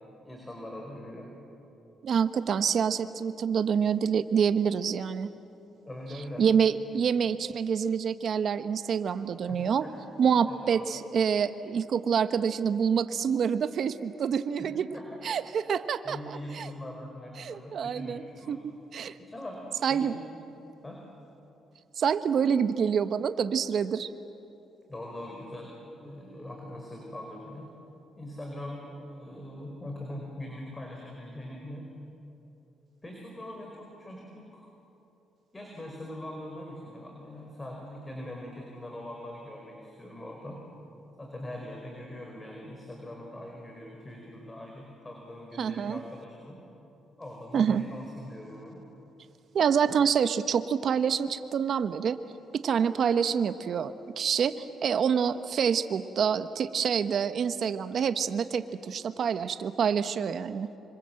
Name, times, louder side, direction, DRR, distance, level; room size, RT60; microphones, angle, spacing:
voice 1, 0.2-1.3 5.8-6.4 9.5-9.9 10.5-10.9 14.6-14.7 14.9-15.0 16.0-18.6 19.3-20.2 20.8-21.0 24.9-27.7 28.2-31.9 33.0-34.7 35.5-40.6 41.2-46.6 47.2-48.8, left 1 dB, 20° left, 0 dB, 4.9 m, -42 dB
voice 2, 2.0-5.3 6.4-9.8 10.2-14.9 15.2-16.7 17.4-18.2 18.5-19.2 19.8-20.2 22.0-24.1 45.6-46.0 47.5-47.8 49.5-52.2 52.5-60.7, right 7 dB, 60° right, 11 dB, 1.1 m, -27 dB
26.5 x 25.5 x 7.8 m, 2.9 s
cardioid pair, 90°, 0 cm